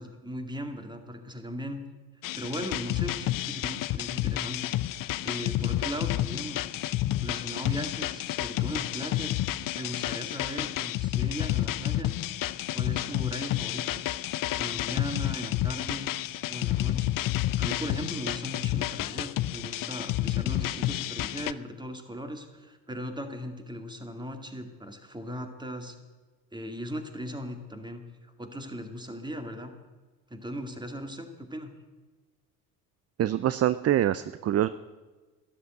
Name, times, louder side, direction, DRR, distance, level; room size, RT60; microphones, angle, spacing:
voice 1, 0.0-1.8 2.3-6.7 7.2-9.4 9.8-12.1 12.7-14.1 14.6-16.1 16.5-17.2 17.6-26.0 26.5-28.0 28.4-29.7 30.3-31.7, equal, 10° right, 6 dB, 2.3 m, -38 dB
sound 1, 2.2-21.5, left 14 dB, 45° left, 0.6 m, -30 dB
voice 2, 33.2-34.7, right 12 dB, 35° right, 15 dB, 0.5 m, -25 dB
12.5 x 11.5 x 7.8 m, 1.3 s
hypercardioid pair, 60°, 46 cm